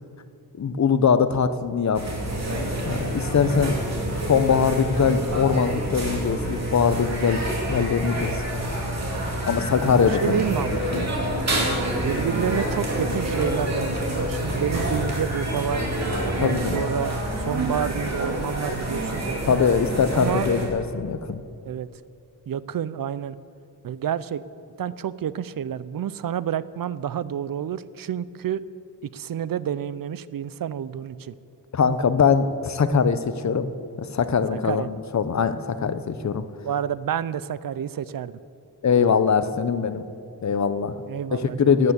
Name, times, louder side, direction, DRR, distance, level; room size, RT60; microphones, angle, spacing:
voice 1, 0.6-2.1 2.8-3.8 4.3-7.4 7.7-8.4 9.5-10.4 10.9-11.1 16.4-16.9 19.5-21.4 31.7-33.7 34.0-36.4 38.8-40.0 40.4-40.9 41.3-41.9, left 6 dB, 45° left, 12 dB, 0.7 m, -22 dB
sound 1, 1.9-20.7, right 1 dB, 40° right, 2.7 m, -27 dB
voice 2, 10.2-10.8 12.0-13.9 14.2-15.9 16.4-17.1 17.4-19.6 20.1-20.5 21.6-21.9 22.5-23.4 23.8-24.4 24.8-28.6 29.0-31.3 34.5-35.0 36.6-38.3 41.0-41.9, right 9 dB, 60° right, 17 dB, 0.5 m, -29 dB
12.0 x 9.5 x 8.3 m, 2.6 s
wide cardioid pair, 145°, 39 cm